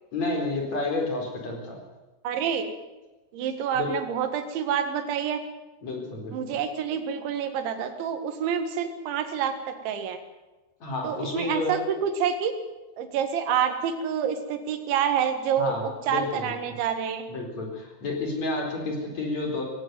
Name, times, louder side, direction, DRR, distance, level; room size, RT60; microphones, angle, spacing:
voice 1, 0.1-1.8 3.7-3.9 5.8-6.6 10.8-11.8 15.6-16.5 17.3-19.6, left 2 dB, 40° left, 1 dB, 5.2 m, -30 dB
voice 2, 2.2-2.7 3.3-5.4 6.3-10.2 11.0-12.5 13.0-17.2, right 8 dB, 80° right, 8 dB, 4.1 m, -27 dB
18.5 x 17.0 x 9.4 m, 1.1 s
omnidirectional pair, 5.3 m